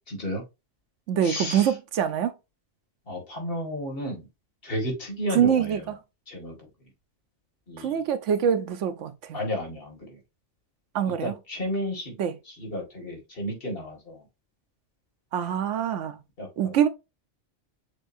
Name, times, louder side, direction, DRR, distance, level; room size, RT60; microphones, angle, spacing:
voice 1, 0.1-0.4 1.2-1.7 3.1-4.3 4.6-5.9 6.3-6.6 7.7-8.0 9.3-10.2 11.2-12.1 12.5-14.2 16.4-16.8, equal, 50° left, 1.9 m, -32 dB
voice 2, 1.1-2.3 5.3-6.0 7.8-9.4 10.9-11.3 12.2-12.4 15.3-16.2 16.6-16.9, right 9 dB, 80° right, 1.0 m, -25 dB
7.0 x 2.6 x 2.5 m
omnidirectional pair, 1.2 m